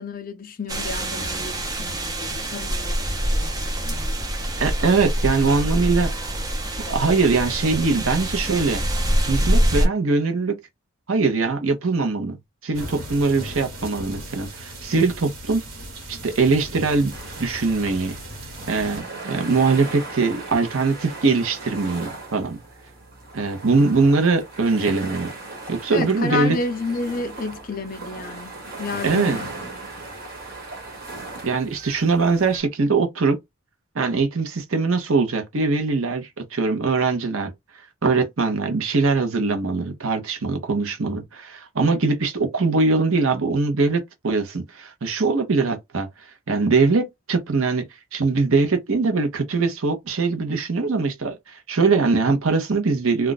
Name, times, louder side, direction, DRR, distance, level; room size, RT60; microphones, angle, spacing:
voice 1, 0.0-4.3 25.9-28.5 28.8-29.5, left 3 dB, 40° left, 0.4 m, -31 dB
sound 1, 0.7-9.9, equal, 15° right, 0.5 m, -25 dB
voice 2, 4.6-6.1 6.8-8.8 9.3-10.6 11.1-12.4 12.6-15.6 16.1-18.2 18.7-22.6 23.3-25.3 25.7-26.6 29.0-29.4 31.4-33.4 33.9-37.5 38.0-46.1 46.5-47.8 48.1-53.3, right 4 dB, 70° right, 0.8 m, -22 dB
sound 2, 12.7-19.0, right 1 dB, 90° right, 1.3 m, -37 dB
sound 3, 17.1-32.6, right 2 dB, 45° right, 1.2 m, -37 dB
2.4 x 2.2 x 3.9 m
head